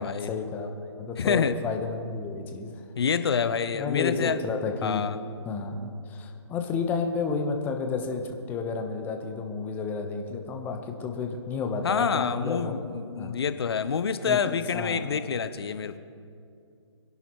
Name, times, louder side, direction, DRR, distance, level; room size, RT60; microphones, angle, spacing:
voice 1, 0.0-2.8 3.7-5.1 5.4-12.8 13.2-13.4 14.2-15.2, left 5 dB, 10° left, 4 dB, 1.0 m, -31 dB
voice 2, 1.2-1.6 3.0-4.4 4.8-5.2 11.8-16.0, left 6 dB, 55° left, 11 dB, 0.9 m, -27 dB
25.5 x 11.0 x 3.1 m, 2.4 s
figure-of-eight pair, 145°, 16 cm